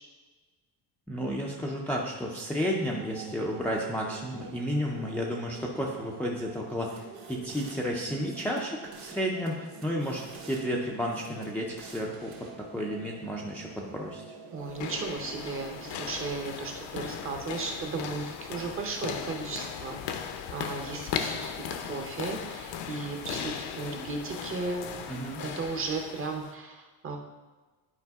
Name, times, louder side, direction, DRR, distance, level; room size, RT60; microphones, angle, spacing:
voice 1, 1.1-14.2 25.1-25.4, equal, 5° left, -2 dB, 0.4 m, -32 dB
sound 1, 2.6-16.4, right 5 dB, 90° right, 0.9 m, -47 dB
sound 2, 6.8-7.8 8.2-9.2 9.5-10.6 11.1-12.5, right 4 dB, 60° right, 1.9 m, -51 dB
voice 2, 14.5-20.0 20.5-25.1 25.4-27.2, right 4 dB, 30° right, 3 dB, 0.8 m, -35 dB
sound 3, 14.6-26.5, left 7 dB, 65° left, 0.8 m, -37 dB
11.0 x 4.9 x 3.5 m, 1.3 s
cardioid pair, 180°, 44 cm